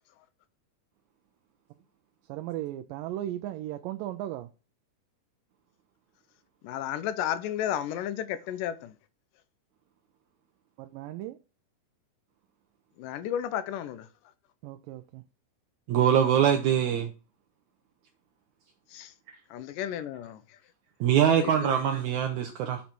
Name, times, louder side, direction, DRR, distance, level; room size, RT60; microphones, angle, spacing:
voice 1, 2.3-4.5 10.8-11.4 14.6-15.2, right 13 dB, 85° right, 2.3 m, -36 dB
voice 2, 6.6-9.0 13.0-14.1 18.9-19.1 19.5-20.6 21.4-21.8, left 10 dB, 80° left, 2.3 m, -33 dB
voice 3, 15.9-17.1 21.0-22.8, right 9 dB, 70° right, 2.1 m, -23 dB
11.5 x 4.1 x 6.0 m
omnidirectional pair, 3.8 m